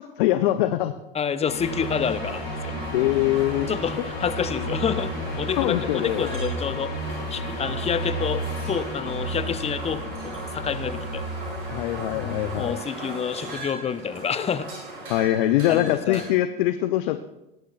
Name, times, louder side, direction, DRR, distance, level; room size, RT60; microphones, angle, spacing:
voice 1, 0.2-0.9 2.9-3.7 5.6-6.3 11.7-12.8 15.1-17.2, left 14 dB, 60° left, 10 dB, 0.7 m, -23 dB
voice 2, 1.1-2.7 3.7-7.0 7.3-11.3 12.1-14.7 15.7-16.2, left 7 dB, 20° left, 12 dB, 0.8 m, -28 dB
sound 1, 1.5-12.7, equal, 80° left, 2.6 m, -33 dB
sound 2, 1.6-16.3, right 2 dB, 80° right, 5.4 m, -37 dB
20.0 x 11.0 x 2.4 m, 0.94 s
hypercardioid pair, 85°, 29 cm